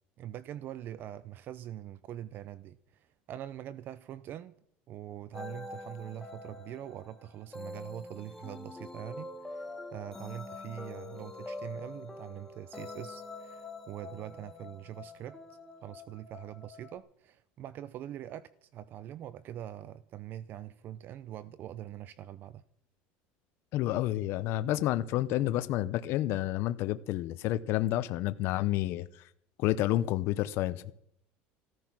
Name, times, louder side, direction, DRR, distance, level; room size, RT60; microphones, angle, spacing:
voice 1, 0.2-4.5 4.9-15.4 15.8-22.6, right 11 dB, 45° right, 0.6 m, -43 dB
sound 1, 5.3-17.0, left 2 dB, 5° left, 2.1 m, -45 dB
voice 2, 23.7-29.2 29.6-30.9, left 14 dB, 60° left, 0.7 m, -30 dB
15.0 x 14.0 x 6.1 m
supercardioid pair, 130°, 5 cm